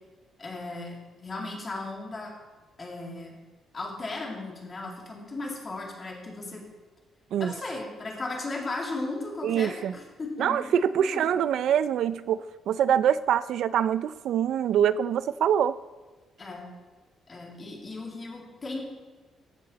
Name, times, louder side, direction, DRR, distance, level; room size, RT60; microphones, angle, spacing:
voice 1, 0.4-2.3 2.8-3.4 3.7-6.6 7.4-11.4 16.4-16.6 17.3-18.8, left 2 dB, 25° left, -1 dB, 2.1 m, -36 dB
voice 2, 9.4-9.9 10.4-15.8, right 9 dB, 65° right, 16 dB, 0.3 m, -25 dB
15.0 x 6.7 x 4.1 m, 1.3 s
cardioid pair, 165°, 0 cm